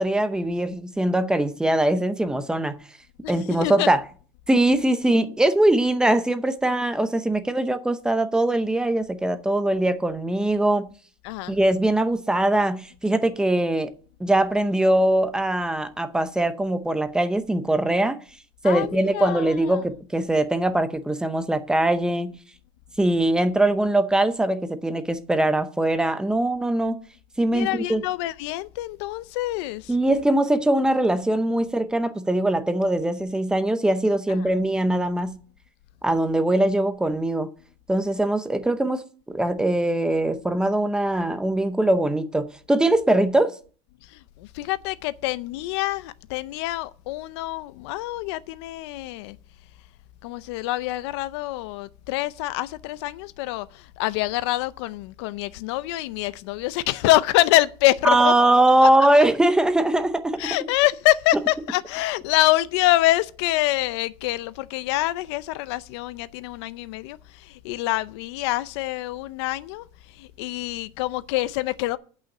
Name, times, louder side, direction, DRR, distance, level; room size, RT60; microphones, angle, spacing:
voice 1, 0.0-2.8 3.3-4.0 4.5-10.9 11.5-13.9 14.2-18.2 18.6-22.3 23.0-27.0 27.4-28.0 29.9-35.4 36.0-37.5 37.9-39.0 39.3-43.5 58.0-60.4, right 1 dB, 5° right, 0.7 m, -21 dB
voice 2, 11.2-11.6 18.6-19.8 27.5-29.9 34.3-34.4 44.1-49.4 50.2-58.5 58.8-58.9 60.4-69.9 70.2-72.0, left 17 dB, 80° left, 0.6 m, -25 dB
8.7 x 5.7 x 7.7 m
cardioid pair, 155°, 14 cm